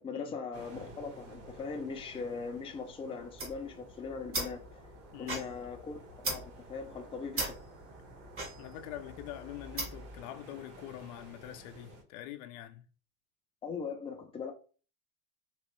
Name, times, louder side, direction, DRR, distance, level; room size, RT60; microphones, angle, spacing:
voice 1, 0.0-4.8 5.2-7.5 13.6-14.5, left 5 dB, 15° left, 0.5 m, -40 dB
sound 1, 0.5-12.0, right 2 dB, 80° right, 1.9 m, -52 dB
sound 2, 3.2-10.2, right 2 dB, 30° right, 1.3 m, -40 dB
voice 2, 5.1-5.4 8.6-12.8, left 13 dB, 70° left, 0.6 m, -45 dB
3.1 x 3.0 x 3.0 m
supercardioid pair, 120°, 44 cm